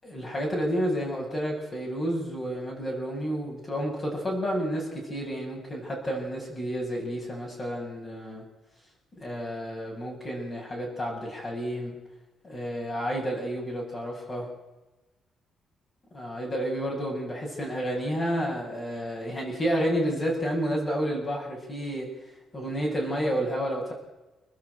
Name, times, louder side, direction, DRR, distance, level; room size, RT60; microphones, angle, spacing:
voice 1, 0.0-8.4 9.2-12.0 12.4-14.5 16.1-22.1 22.5-23.9, equal, 30° left, -2 dB, 7.2 m, -30 dB
29.5 x 13.5 x 8.5 m, 1.1 s
cardioid pair, 110°, 0 cm